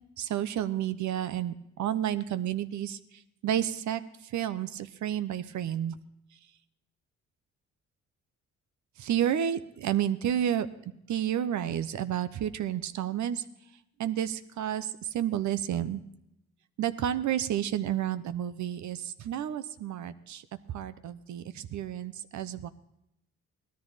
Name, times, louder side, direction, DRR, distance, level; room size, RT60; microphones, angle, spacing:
voice 1, 0.2-6.0 9.0-10.7 11.1-13.5 14.0-16.0 16.8-22.7, right 10 dB, 70° right, 13 dB, 0.9 m, -31 dB
17.5 x 13.0 x 4.1 m, 0.82 s
cardioid pair, 90°, 30 cm